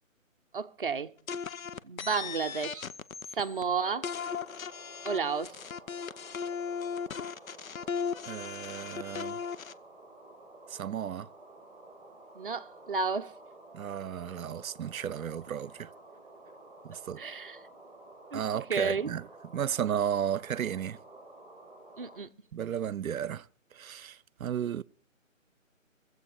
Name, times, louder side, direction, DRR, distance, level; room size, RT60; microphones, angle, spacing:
voice 1, 0.5-1.1 1.8-2.9 3.3-4.1 5.0-5.6 12.3-13.4 17.2-17.6 18.3-18.4 18.7-19.1 22.0-22.3, right 5 dB, 40° right, 0.6 m, -32 dB
sound 1, 1.3-3.6 4.0-9.7, left 6 dB, 80° left, 0.8 m, -37 dB
sound 2, 3.7-22.2, right 2 dB, ahead, 4.9 m, -52 dB
voice 2, 8.2-9.4 10.7-11.3 13.7-15.9 16.8-17.2 18.3-21.0 22.5-23.5 23.7-24.8, right 9 dB, 85° right, 0.6 m, -34 dB
23.0 x 7.9 x 4.7 m
hypercardioid pair, 170°, 40 cm